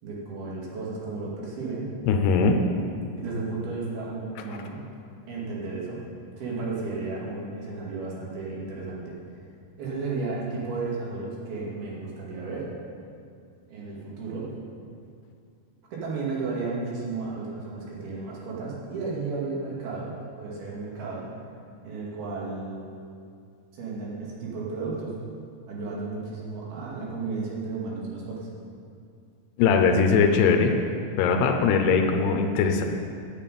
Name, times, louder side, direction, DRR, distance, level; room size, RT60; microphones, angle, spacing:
voice 1, 0.0-1.9 3.1-4.8 5.3-6.0 6.4-9.1 9.8-12.7 13.7-14.5 15.9-21.3 21.8-22.8 23.7-25.2 25.7-28.5, right 3 dB, 70° right, -5 dB, 4.2 m, -33 dB
voice 2, 2.1-2.6 29.6-30.7 31.2-32.8, left 5 dB, 85° left, 4 dB, 2.9 m, -20 dB
9.0 x 7.5 x 9.1 m, 2.3 s
omnidirectional pair, 4.6 m